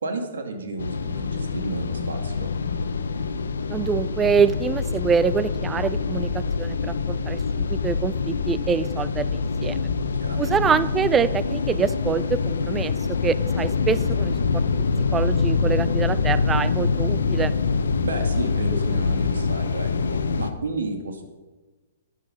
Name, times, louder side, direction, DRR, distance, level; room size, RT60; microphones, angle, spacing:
voice 1, 0.0-2.5 10.1-10.8 18.0-21.2, right 3 dB, 70° right, 5 dB, 2.4 m, -32 dB
sound 1, 0.8-20.5, left 4 dB, 70° left, 0.9 m, -25 dB
voice 2, 3.7-9.8 10.4-14.6 15.1-17.5, right 6 dB, 15° right, 16 dB, 0.4 m, -25 dB
12.0 x 9.8 x 5.3 m, 1.2 s
figure-of-eight pair, 120°, 0 cm